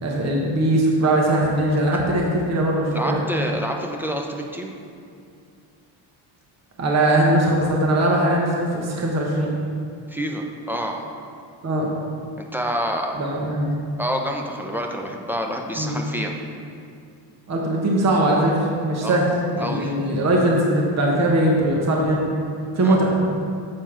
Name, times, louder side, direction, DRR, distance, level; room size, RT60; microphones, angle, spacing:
voice 1, 0.0-3.2 6.8-9.5 11.6-11.9 13.2-13.8 15.8-15.9 17.5-19.3 19.5-22.3 22.8-23.2, right 1 dB, 35° right, -2 dB, 1.2 m, -20 dB
voice 2, 2.9-4.7 10.1-11.1 12.4-13.2 14.0-16.3 19.0-19.2 19.6-20.0 22.8-23.0, equal, 5° right, 2 dB, 0.8 m, -28 dB
7.6 x 4.5 x 5.7 m, 2.4 s
cardioid pair, 90°, 48 cm